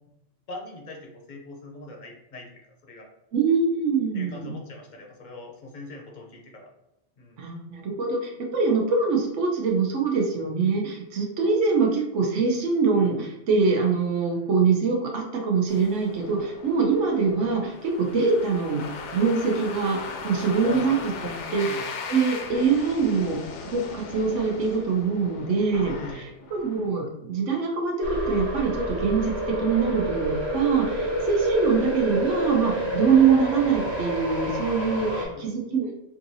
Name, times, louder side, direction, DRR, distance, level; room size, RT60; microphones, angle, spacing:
voice 1, 0.5-3.1 4.1-6.7 7.2-7.4 14.2-14.6 20.6-21.4 21.6-21.8 25.9-26.3 35.1-35.5, left 2 dB, 50° left, 0 dB, 0.7 m, -42 dB
voice 2, 3.3-4.5 7.4-18.8 19.1-20.0 20.2-20.9 21.2-23.4 23.7-26.2 26.5-35.9, right 5 dB, 85° right, 1 dB, 1.1 m, -24 dB
sound 1, 15.7-26.8, left 4 dB, 80° left, 0.9 m, -38 dB
sound 2, 28.0-35.2, right 1 dB, 65° right, 1.4 m, -29 dB
3.7 x 2.6 x 2.7 m, 0.86 s
omnidirectional pair, 1.2 m